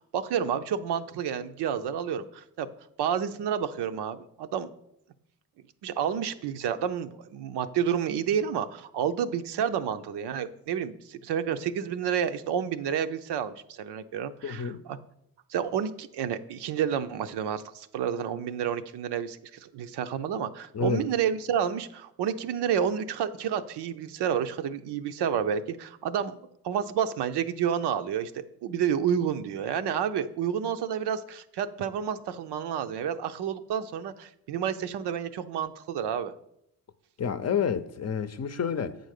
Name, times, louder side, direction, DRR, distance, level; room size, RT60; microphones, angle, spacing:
voice 1, 0.1-2.7 3.0-4.7 5.8-15.0 15.5-26.4 26.6-36.3, right 8 dB, 85° right, 0.6 m, -30 dB
voice 2, 14.4-14.8 20.7-21.1 37.2-39.0, left 7 dB, 40° left, 0.6 m, -29 dB
8.3 x 3.9 x 6.5 m
cardioid pair, 80°, 39 cm